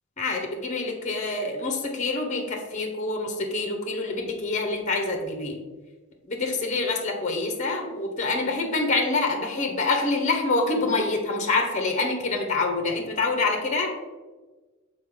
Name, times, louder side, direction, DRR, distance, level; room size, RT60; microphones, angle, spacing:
voice 1, 0.2-5.6 6.3-13.9, left 3 dB, 35° left, 3 dB, 0.9 m, -26 dB
6.4 x 4.3 x 3.7 m, 1.3 s
head